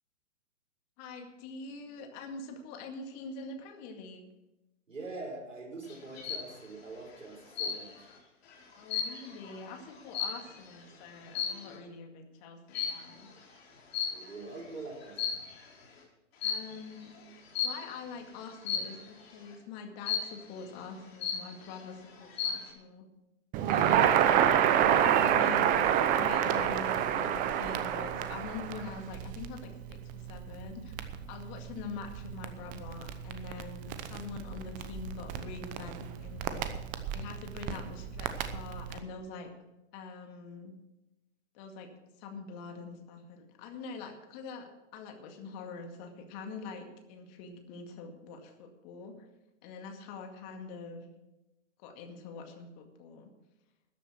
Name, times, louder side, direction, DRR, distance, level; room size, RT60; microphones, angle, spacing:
voice 1, 1.0-4.3 8.7-13.3 16.4-23.1 23.7-24.1 24.4-31.0 31.3-36.7 37.1-39.5 39.9-40.7 41.5-41.9 42.2-49.2 49.6-51.1 51.8-53.3, left 4 dB, 35° left, 5 dB, 2.1 m, -44 dB
voice 2, 4.9-8.1 14.1-15.4, right 3 dB, 80° right, 0 dB, 5.0 m, -44 dB
sound 1, 5.9-6.5 7.6-8.1 8.5-10.7 11.3-11.7 12.7-13.1 13.9-14.5 15.0-15.7 16.4-16.8 17.5-17.9 18.7-19.1 20.1-20.5 20.9-21.0 21.2-21.8 22.2-22.7, left 7 dB, 55° left, 4.2 m, -34 dB
Crackle, 23.5-39.0, right 10 dB, 20° right, 0.8 m, -29 dB
13.5 x 10.0 x 6.2 m, 0.96 s
figure-of-eight pair, 120°, 37 cm